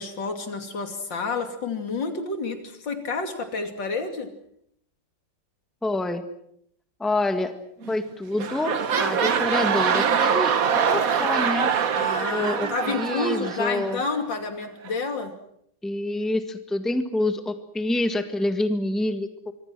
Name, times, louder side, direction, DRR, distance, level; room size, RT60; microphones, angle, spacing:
voice 1, 0.0-4.3 11.9-15.3, left 4 dB, 80° left, 6 dB, 3.4 m, -29 dB
voice 2, 5.8-6.2 7.0-7.5 7.9-10.5 10.8-11.7 12.3-14.0 15.8-19.5, left 2 dB, ahead, 7 dB, 1.6 m, -27 dB
sound 1, 7.8-8.1 8.3-14.2 14.9-15.0, right 7 dB, 50° right, 1.6 m, -24 dB
25.5 x 25.0 x 6.2 m, 0.72 s
omnidirectional pair, 2.0 m